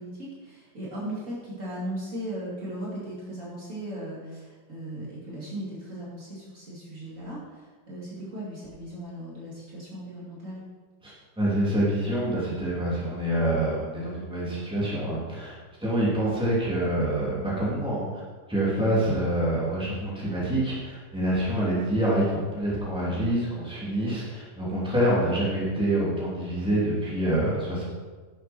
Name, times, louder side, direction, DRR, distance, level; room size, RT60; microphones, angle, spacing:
voice 1, 0.0-10.6, right 1 dB, 50° right, -7 dB, 3.0 m, -37 dB
voice 2, 11.0-15.5 15.8-18.2 18.5-27.8, right 1 dB, 5° right, -7 dB, 2.8 m, -26 dB
11.0 x 7.4 x 4.4 m, 1.4 s
omnidirectional pair, 1.8 m